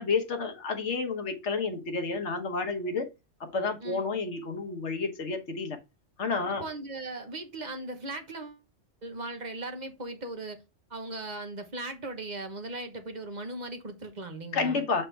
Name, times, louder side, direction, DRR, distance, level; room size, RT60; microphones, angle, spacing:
voice 1, 0.0-3.1 3.4-5.8 6.2-6.6 14.5-15.1, left 4 dB, 75° left, 1.5 m, -30 dB
voice 2, 6.6-8.6 9.0-10.6 10.9-14.8, right 2 dB, 40° right, 1.2 m, -38 dB
7.5 x 4.4 x 3.3 m
omnidirectional pair, 1.2 m